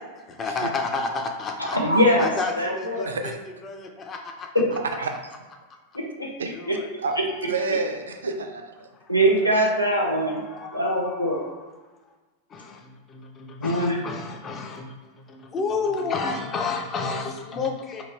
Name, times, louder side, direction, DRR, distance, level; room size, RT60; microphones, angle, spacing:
voice 1, 0.2-1.8 2.2-3.4 3.6-4.5 6.5-7.8 8.9-9.6 10.0-11.7 12.5-18.0, left 4 dB, 25° left, 3 dB, 0.5 m, -32 dB
voice 2, 1.7-2.3 2.6-3.1 4.5-4.7 5.9-6.3 6.7-6.8 9.1-10.4 10.7-11.4 13.6-14.0, equal, 90° left, -2 dB, 0.6 m, -22 dB
voice 3, 7.5-8.9, right 4 dB, 70° right, 5 dB, 0.3 m, -29 dB
2.9 x 2.4 x 3.2 m, 1.3 s
figure-of-eight pair, 90°, 0 cm